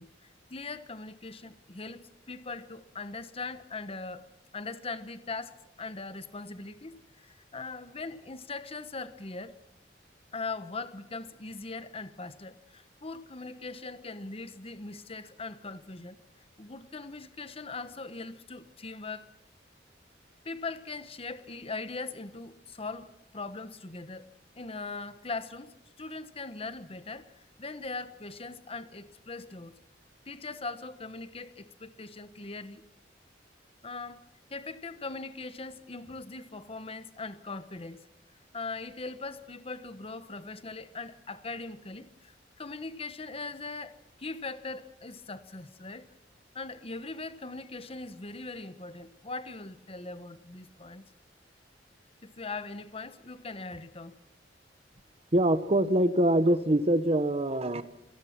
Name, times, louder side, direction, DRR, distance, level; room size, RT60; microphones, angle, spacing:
voice 1, 0.0-4.3 4.5-9.6 10.3-16.2 16.6-19.3 20.4-24.3 24.5-29.8 30.3-32.8 33.8-38.0 38.5-46.1 46.5-51.0 52.2-54.2, left 3 dB, 35° left, 12 dB, 1.2 m, -40 dB
voice 2, 55.3-57.8, right 1 dB, 35° right, 13 dB, 1.1 m, -24 dB
27.0 x 18.5 x 6.0 m, 0.77 s
head